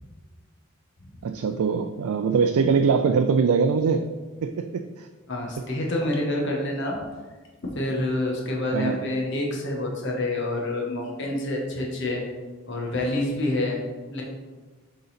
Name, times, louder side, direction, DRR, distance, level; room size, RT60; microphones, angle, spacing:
voice 1, 1.2-4.1 4.4-5.1 8.7-9.0, right 5 dB, 85° right, 6 dB, 0.4 m, -22 dB
voice 2, 5.3-7.0 7.6-12.2 12.7-13.8 14.1-14.2, left 1 dB, 55° left, -1 dB, 1.2 m, -27 dB
6.7 x 3.9 x 4.2 m, 1.3 s
head